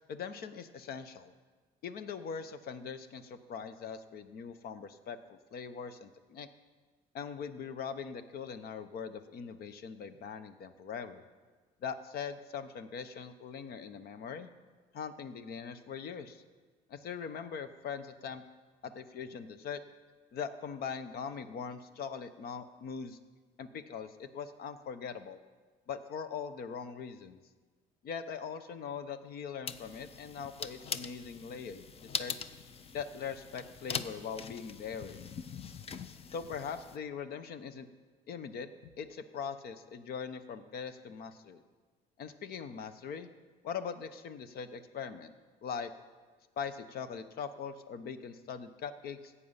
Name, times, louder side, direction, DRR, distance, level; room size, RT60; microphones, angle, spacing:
voice 1, 0.1-1.3 1.8-6.5 7.1-11.2 11.8-14.5 14.9-16.4 16.9-18.4 18.8-19.8 20.3-23.2 23.6-25.4 25.9-27.4 28.0-32.5 32.9-35.3 36.3-37.9 38.3-41.6 42.2-43.3 43.6-45.3 45.6-45.9 46.6-49.3, left 6 dB, 65° left, 11 dB, 0.8 m, -41 dB
sound 1, 29.7-37.0, left 6 dB, 35° left, 0.6 m, -42 dB
14.5 x 8.4 x 5.7 m, 1.4 s
cardioid pair, 110°, 17 cm